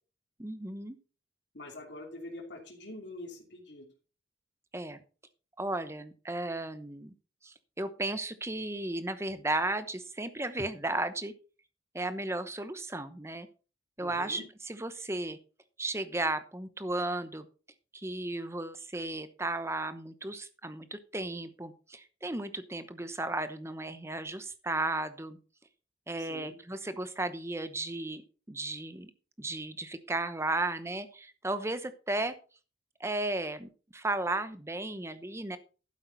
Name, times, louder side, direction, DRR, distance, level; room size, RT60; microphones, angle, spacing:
voice 1, 0.4-1.0 4.7-5.0 5.6-7.1 7.4-11.3 11.9-13.5 14.0-15.4 15.8-17.5 17.9-25.4 26.1-29.1 29.4-32.3 33.0-35.6, right 2 dB, 15° right, 11 dB, 0.9 m, -34 dB
voice 2, 1.5-3.9 14.0-14.4 26.2-26.5, left 1 dB, 70° left, -1 dB, 2.9 m, -45 dB
12.0 x 8.7 x 4.0 m, 0.36 s
head